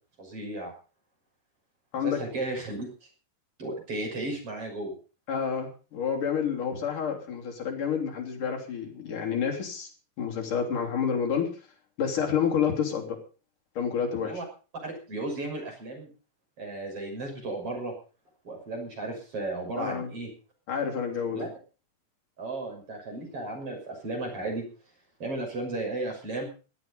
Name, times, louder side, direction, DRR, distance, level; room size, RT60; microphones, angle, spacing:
voice 1, 0.2-0.7 2.0-3.1 3.6-5.0 10.7-10.9 14.2-14.4 14.8-16.1 16.6-18.0 18.4-20.3 21.3-21.5 22.4-24.6 25.2-26.5, right 2 dB, 45° right, 2 dB, 7.1 m, -34 dB
voice 2, 5.3-9.9 10.2-11.5 12.0-13.2 13.8-14.3 19.8-20.1 20.7-21.5, left 7 dB, 70° left, 2 dB, 4.7 m, -29 dB
17.0 x 12.5 x 5.4 m, 0.36 s
omnidirectional pair, 3.7 m